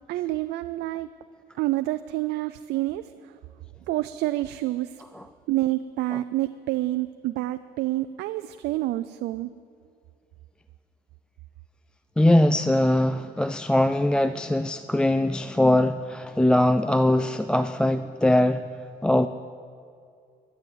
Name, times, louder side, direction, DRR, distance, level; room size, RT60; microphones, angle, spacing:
voice 1, 0.1-1.1 1.5-3.4 3.9-5.0 5.5-9.5, right 16 dB, 80° right, 11 dB, 0.4 m, -28 dB
voice 2, 12.2-18.6 19.0-19.3, left 1 dB, 5° left, 11 dB, 0.3 m, -21 dB
12.0 x 11.5 x 8.0 m, 2.4 s
cardioid pair, 110°, 17 cm